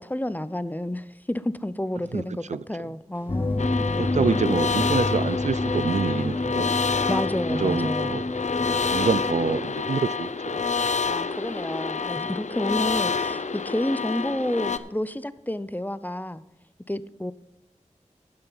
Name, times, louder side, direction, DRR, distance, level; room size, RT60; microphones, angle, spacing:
voice 1, 0.0-4.6 7.1-8.1 11.1-16.4 16.9-17.3, left 1 dB, 15° left, 15 dB, 0.6 m, -30 dB
sound 1, 3.1-14.9, right 1 dB, 15° right, 1.8 m, -52 dB
sound 2, 3.3-9.6, left 2 dB, 40° left, 0.8 m, -28 dB
sound 3, 3.6-14.8, left 5 dB, 65° left, 0.6 m, -28 dB
voice 2, 4.0-6.7 7.1-7.2 7.5-8.2 8.9-10.6, right 5 dB, 65° right, 17 dB, 0.4 m, -26 dB
12.5 x 9.5 x 4.0 m, 0.90 s
wide cardioid pair, 40°, 13 cm